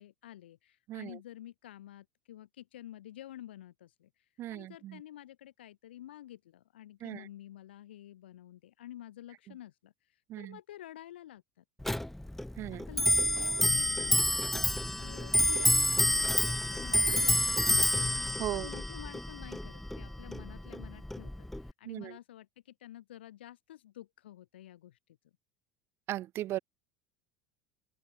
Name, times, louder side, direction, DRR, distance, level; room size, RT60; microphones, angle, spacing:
voice 1, 0.0-11.6 12.7-17.7 18.5-25.2, left 13 dB, 80° left, 2.8 m, -50 dB
voice 2, 0.9-1.2 4.4-5.0 7.0-7.3 10.3-10.6 12.6-12.9 18.4-18.7 21.9-22.2 26.1-26.6, right 14 dB, 45° right, 0.5 m, -37 dB
Clock, 11.8-21.7, left 1 dB, 5° left, 0.5 m, -29 dB
open air
hypercardioid pair, 80°, 6 cm